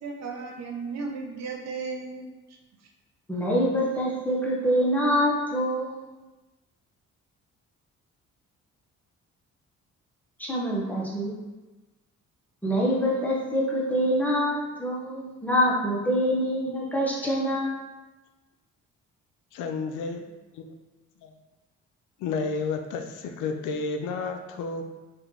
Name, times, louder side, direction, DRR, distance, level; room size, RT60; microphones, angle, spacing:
voice 1, 0.0-2.6, right 4 dB, 65° right, 1 dB, 0.7 m, -35 dB
voice 2, 3.3-6.0 10.4-11.3 12.6-17.7, equal, 5° left, -5 dB, 1.0 m, -25 dB
voice 3, 19.5-20.2 20.5-20.7 21.2-21.3 22.2-24.8, left 4 dB, 85° left, 5 dB, 0.5 m, -31 dB
3.3 x 2.6 x 3.7 m, 1.1 s
cardioid pair, 90°, 30 cm